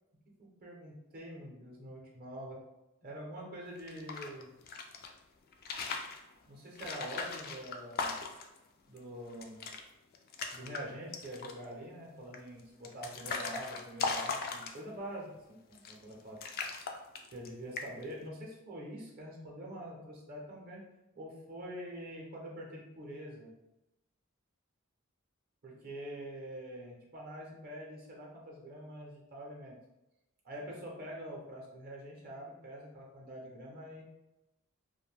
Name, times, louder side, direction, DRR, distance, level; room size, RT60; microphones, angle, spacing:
voice 1, 0.4-2.6 3.0-4.5 6.5-8.1 8.9-9.6 10.5-16.4 17.3-20.8 21.1-23.5 25.6-29.8 30.4-34.0, equal, 45° right, -2 dB, 0.6 m, -45 dB
sound 1, 3.8-5.1 5.5-6.2 6.8-8.6 9.0-9.1 9.3-9.8 10.1-10.8 11.1-11.7 12.3-15.0 15.7-16.1 16.4-17.5 17.8-18.1, left 4 dB, 45° left, 0.3 m, -38 dB
2.5 x 2.1 x 3.2 m, 0.92 s
head